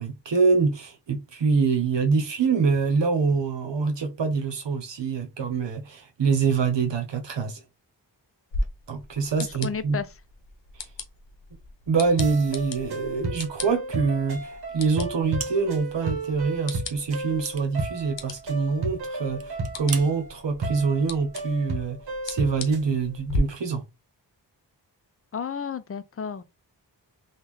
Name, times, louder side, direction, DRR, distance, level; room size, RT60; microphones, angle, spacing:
voice 1, 0.0-7.6 8.9-10.0 11.9-22.0 22.2-23.8, right 5 dB, 75° right, 0.9 m, -25 dB
sound 1, 8.5-23.4, left 3 dB, 80° left, 0.8 m, -39 dB
voice 2, 9.4-10.1 25.3-26.4, left 6 dB, 35° left, 0.4 m, -32 dB
sound 2, 12.2-22.9, right 2 dB, 60° right, 1.0 m, -33 dB
sound 3, 15.4-15.9 16.2-16.3 17.1-18.5 18.8-19.0 19.4-20.1, right 6 dB, 35° right, 0.5 m, -38 dB
3.6 x 2.4 x 3.1 m
cardioid pair, 55°, 44 cm